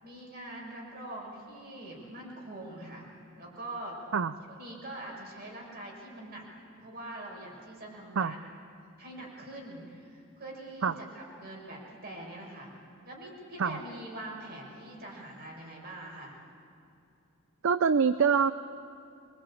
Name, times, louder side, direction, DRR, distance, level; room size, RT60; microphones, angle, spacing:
voice 1, 0.0-3.1 3.4-4.0 4.6-6.4 6.8-8.4 9.0-12.7 13.0-16.3, right 1 dB, 45° right, -1 dB, 6.0 m, -43 dB
voice 2, 17.6-18.5, right 6 dB, 65° right, 13 dB, 0.5 m, -25 dB
24.5 x 21.5 x 8.6 m, 2.5 s
head